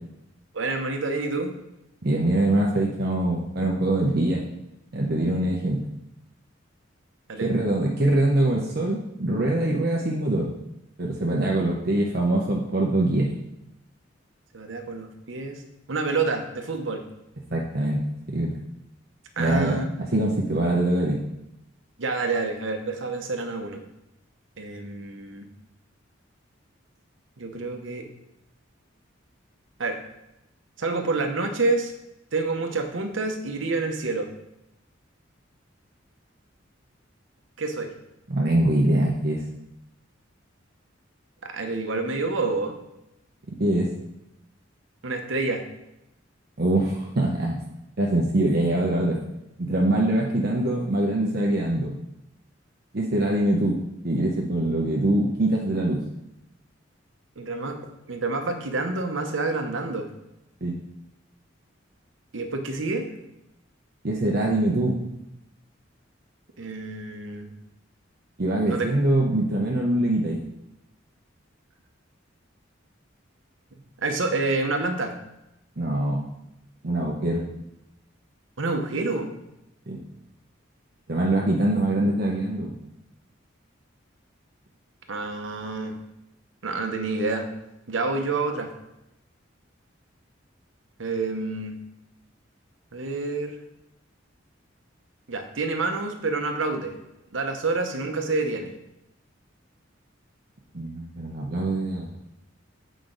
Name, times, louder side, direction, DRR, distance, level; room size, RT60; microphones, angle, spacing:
voice 1, 0.5-1.5 7.3-7.5 14.5-15.6 15.9-17.0 19.4-19.8 22.0-23.8 24.6-25.5 27.4-28.1 29.8-30.0 30.8-31.9 32.3-34.3 37.6-37.9 41.4-42.8 45.0-45.6 57.4-60.1 62.3-63.1 66.6-67.5 68.7-68.9 74.0-75.2 78.6-79.3 85.1-85.9 86.6-87.5 87.9-88.7 91.0-91.7 92.9-93.6 95.3-97.0 97.3-98.7, right 3 dB, 75° right, 5 dB, 0.9 m, -28 dB
voice 2, 2.0-4.4 4.9-5.8 7.4-10.5 11.0-13.3 17.5-18.5 19.4-19.8 20.1-21.2 38.3-39.4 43.6-43.9 46.6-47.6 48.0-49.2 49.6-51.9 52.9-53.8 54.0-56.0 60.6-60.8 64.0-65.0 68.4-70.4 75.8-76.3 76.8-77.5 79.9-80.0 81.1-82.7 100.7-102.2, right 1 dB, 50° right, -2 dB, 0.8 m, -23 dB
7.8 x 5.1 x 3.9 m, 0.87 s
head